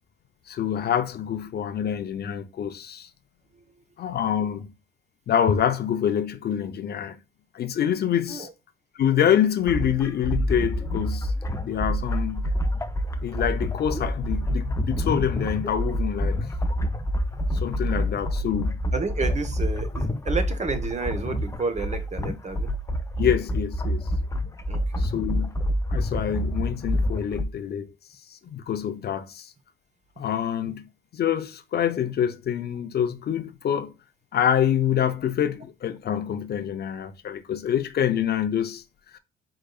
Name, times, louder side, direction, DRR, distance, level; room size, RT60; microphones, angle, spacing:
voice 1, 0.5-3.1 4.0-4.7 5.3-7.2 7.5-8.5 8.9-11.3 11.6-12.5 13.2-16.5 17.5-18.7 23.2-24.0 25.0-25.5 25.9-27.9 28.3-29.5 30.2-30.9 31.1-33.9 34.3-38.8 39.1-39.2, left 9 dB, 55° left, 0.6 m, -26 dB
sound 1, 9.7-27.4, equal, 15° left, 0.6 m, -27 dB
voice 2, 18.9-22.7 24.7-25.0, right 4 dB, 35° right, 1.0 m, -30 dB
4.8 x 3.9 x 2.3 m
cardioid pair, 90°, 20 cm